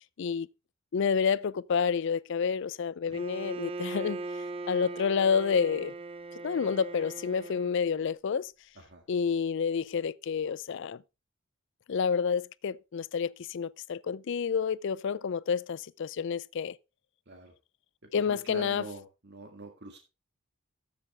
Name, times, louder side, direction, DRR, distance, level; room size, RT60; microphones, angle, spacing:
voice 1, 0.9-4.2 4.7-5.9 6.4-8.5 9.1-11.0 11.9-16.8 18.1-18.8, left 6 dB, 60° left, 0.4 m, -29 dB
Bowed string instrument, 3.1-7.9, right 3 dB, 25° right, 0.5 m, -39 dB
voice 2, 18.0-20.0, right 2 dB, 55° right, 1.8 m, -44 dB
13.5 x 7.2 x 3.3 m
head